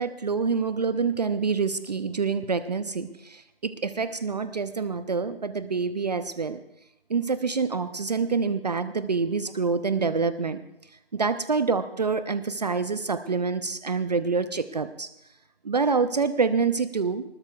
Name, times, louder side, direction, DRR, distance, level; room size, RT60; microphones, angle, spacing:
voice 1, 0.0-6.6 7.1-10.6 11.1-15.1 15.6-17.2, right 5 dB, 45° right, 12 dB, 0.6 m, -26 dB
22.5 x 20.0 x 2.4 m, 0.82 s
figure-of-eight pair, 150°, 30 cm